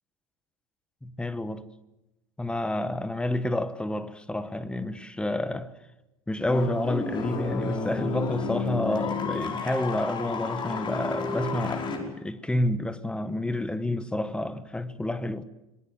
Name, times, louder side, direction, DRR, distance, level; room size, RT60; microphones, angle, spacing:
voice 1, 1.0-1.6 2.4-5.7 6.3-15.4, left 1 dB, 5° left, 1.4 m, -29 dB
Sessão de Filme, 6.5-12.0, left 4 dB, 25° left, 5.2 m, -31 dB
26.0 x 22.0 x 7.7 m
figure-of-eight pair, 80°, 18 cm